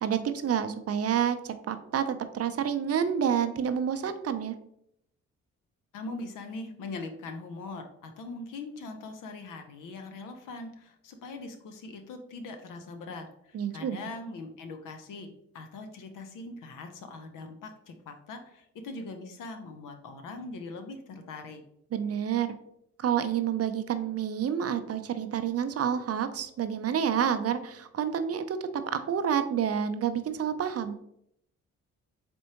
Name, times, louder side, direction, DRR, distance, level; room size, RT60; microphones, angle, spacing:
voice 1, 0.0-4.5 13.5-14.0 21.9-22.5 23.0-31.0, right 8 dB, 45° right, 10 dB, 0.5 m, -29 dB
voice 2, 5.9-21.6, left 3 dB, 70° left, 6 dB, 0.7 m, -41 dB
4.3 x 3.4 x 2.9 m, 0.74 s
hypercardioid pair, 45°, 34 cm